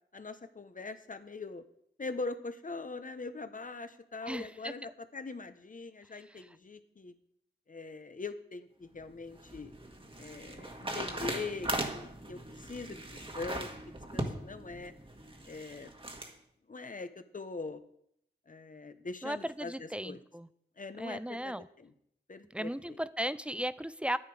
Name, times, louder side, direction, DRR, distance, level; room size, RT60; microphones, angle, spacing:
voice 1, 0.1-1.6 2.0-7.1 7.7-9.7 10.2-14.9 15.5-15.9 16.7-17.8 18.5-20.2 20.8-21.9 22.3-23.0, left 3 dB, 45° left, 10 dB, 1.0 m, -42 dB
voice 2, 4.3-4.7 6.1-6.5 19.2-20.5 21.0-21.7 22.5-24.2, equal, 5° right, 15 dB, 0.5 m, -36 dB
sound 1, 9.0-16.3, right 1 dB, 30° right, 1.6 m, -39 dB
10.0 x 10.0 x 4.9 m, 0.72 s
cardioid pair, 50°, 19 cm